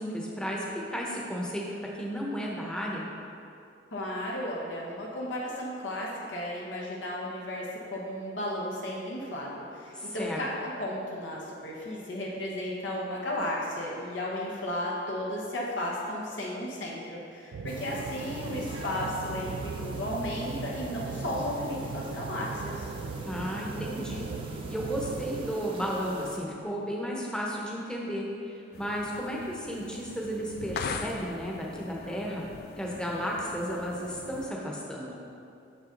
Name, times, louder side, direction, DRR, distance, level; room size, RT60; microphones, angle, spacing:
voice 1, 0.0-1.7 1.9-3.0 9.9-10.4 23.2-24.3 24.7-32.4 32.8-35.2, equal, 5° left, -3 dB, 0.8 m, -33 dB
voice 2, 3.9-22.9, left 1 dB, 85° left, -4 dB, 1.1 m, -34 dB
sound 1, 17.5-25.5, right 5 dB, 70° right, 0.3 m, -39 dB
sound 2, 17.7-26.4, right 1 dB, 30° right, 0.7 m, -42 dB
sound 3, 28.7-34.5, left 5 dB, 55° left, 0.3 m, -41 dB
6.7 x 6.0 x 3.8 m, 2.5 s
head